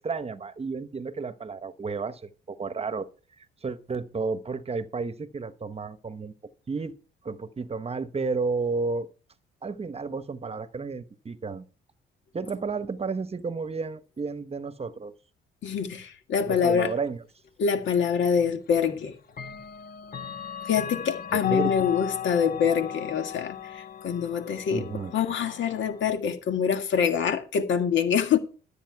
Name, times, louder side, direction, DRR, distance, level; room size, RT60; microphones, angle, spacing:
voice 1, 0.0-3.1 3.4-6.3 6.7-6.9 7.2-9.1 9.6-11.6 12.3-15.1 16.5-17.2 21.3-21.7 24.7-25.1, right 4 dB, 30° right, 1.0 m, -32 dB
voice 2, 15.6-16.9 17.6-19.2 20.7-28.4, left 7 dB, 70° left, 1.8 m, -25 dB
Clock, 17.9-18.0 19.3-26.1, left 10 dB, 45° left, 1.4 m, -36 dB
13.0 x 8.6 x 4.7 m
cardioid pair, 90°, 20 cm